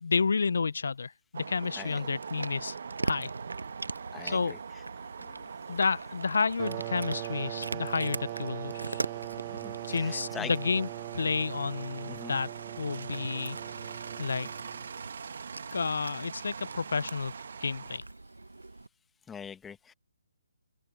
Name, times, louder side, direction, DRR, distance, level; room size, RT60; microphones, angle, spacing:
voice 1, 0.0-2.8 3.0-3.3 4.2-4.5 5.2-9.0 9.9-10.9 11.1-12.5 12.8-13.6 14.2-14.5 15.7-17.3 17.6-18.0, left 5 dB, 65° left, 0.8 m, -30 dB
sound 1, 1.3-18.0, right 6 dB, 60° right, 1.4 m, -43 dB
Cat, 1.8-18.9, right 2 dB, 85° right, 1.0 m, -42 dB
voice 2, 4.1-4.8 9.5-10.5 12.1-12.4 19.3-19.9, left 7 dB, 10° left, 1.5 m, -43 dB
sound 2, 6.6-15.0, right 21 dB, 30° right, 0.9 m, -40 dB
open air
figure-of-eight pair, 145°, 0 cm